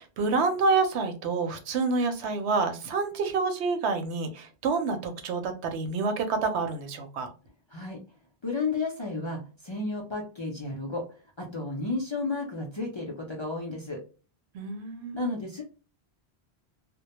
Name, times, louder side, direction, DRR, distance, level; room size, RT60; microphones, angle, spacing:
voice 1, 0.0-7.3 14.5-15.2, right 4 dB, 85° right, 6 dB, 0.9 m, -28 dB
voice 2, 8.4-11.0 11.4-14.0 15.1-15.6, left 3 dB, 40° left, -1 dB, 0.4 m, -32 dB
2.2 x 2.1 x 2.8 m, 0.33 s
omnidirectional pair, 1.1 m